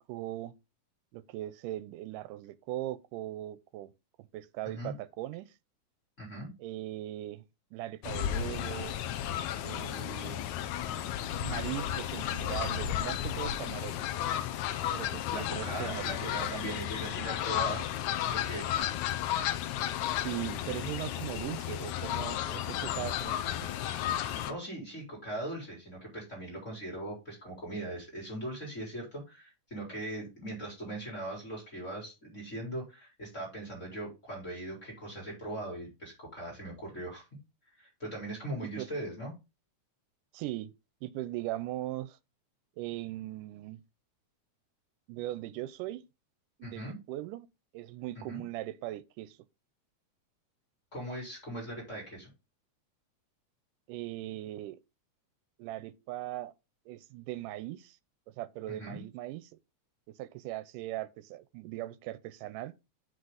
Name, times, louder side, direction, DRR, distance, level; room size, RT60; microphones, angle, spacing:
voice 1, 0.1-0.5 1.1-3.9 4.2-5.6 6.6-7.4 7.7-9.0 9.6-10.5 11.4-14.1 14.9-16.6 20.2-23.7 38.6-38.9 40.3-40.7 41.0-42.2 42.8-43.8 45.1-46.0 46.6-47.5 47.7-49.4 53.9-54.8 55.6-56.5 56.9-58.0 58.3-59.6 60.2-62.7, right 15 dB, 90° right, 2.2 m, -39 dB
voice 2, 6.2-6.5 15.3-17.9 18.3-18.7 24.4-37.2 37.8-39.3 46.6-46.9 48.3-48.4 50.9-52.3 58.7-59.0, right 1 dB, 20° left, 4.1 m, -40 dB
Fowl, 8.0-24.5, left 11 dB, 75° left, 1.9 m, -33 dB
7.9 x 5.9 x 4.0 m
omnidirectional pair, 3.7 m